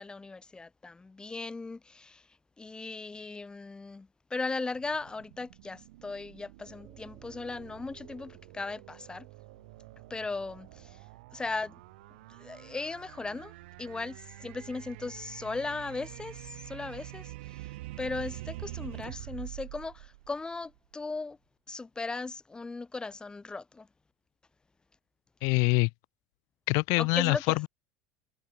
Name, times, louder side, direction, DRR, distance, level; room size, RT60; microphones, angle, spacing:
voice 1, 0.0-2.3 2.6-9.3 10.1-11.0 11.3-11.8 12.3-13.5 13.8-21.4 21.7-23.9 27.0-27.6, left 3 dB, 15° left, 0.8 m, -37 dB
sound 1, 4.7-20.9, right 19 dB, 80° right, 0.6 m, -46 dB
sound 2, 6.7-15.8, right 8 dB, 35° right, 5.4 m, -61 dB
voice 2, 25.4-25.9 26.7-27.7, left 33 dB, 65° left, 0.4 m, -25 dB
supercardioid pair, 100°, 6 cm